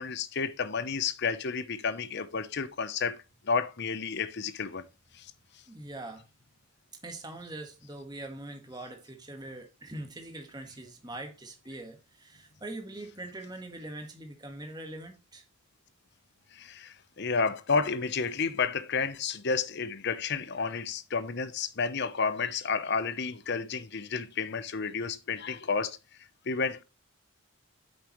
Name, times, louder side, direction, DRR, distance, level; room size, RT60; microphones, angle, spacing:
voice 1, 0.0-3.2 3.4-4.9 5.1-5.3 16.5-26.0 26.5-26.8, left 5 dB, 55° left, 0.8 m, -31 dB
voice 2, 5.7-6.2 7.0-15.4, right 2 dB, 20° right, 1.5 m, -42 dB
8.7 x 6.7 x 3.1 m
head